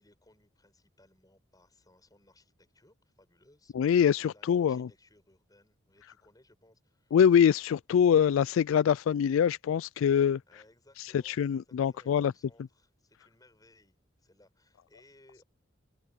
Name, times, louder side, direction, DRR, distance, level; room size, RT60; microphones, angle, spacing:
voice 1, 0.0-3.7 4.2-7.2 10.5-15.4, left 1 dB, 20° left, 7.1 m, -63 dB
voice 2, 3.7-4.9 7.1-10.4 11.3-12.3, left 8 dB, 85° left, 0.3 m, -24 dB
head